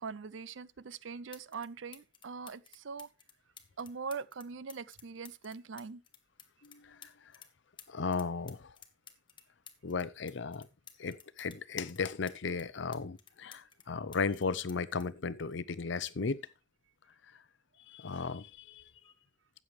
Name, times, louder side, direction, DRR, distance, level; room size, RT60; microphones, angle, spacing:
voice 1, 0.0-3.1 3.8-6.0, right 5 dB, 75° right, 0.6 m, -42 dB
sound 1, 0.8-0.9 1.3-1.7 1.9-7.5 7.8-11.6 11.9-13.9 14.1-16.0 16.9-17.1, left 7 dB, 25° left, 1.2 m, -55 dB
voice 2, 6.6-7.3 7.9-8.8 9.8-10.7 11.0-16.4 17.9-18.8, left 4 dB, 65° left, 0.6 m, -36 dB
13.0 x 8.5 x 3.2 m
head